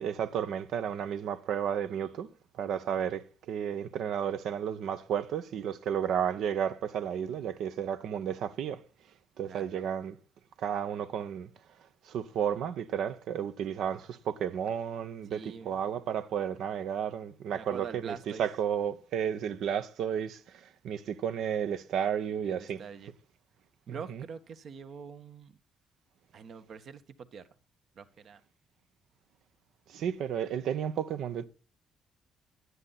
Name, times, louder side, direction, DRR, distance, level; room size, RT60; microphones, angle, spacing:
voice 1, 0.0-2.3 2.6-8.8 9.4-10.2 10.6-11.5 12.0-22.8 24.1-24.2 29.9-31.5, right 8 dB, 80° right, 1.1 m, -32 dB
voice 2, 9.4-9.8 15.3-15.8 17.5-18.4 22.4-23.1 23.9-25.6 26.3-27.4 27.9-28.4, right 6 dB, 60° right, 1.4 m, -44 dB
11.0 x 9.7 x 4.1 m
cardioid pair, 90°, 0 cm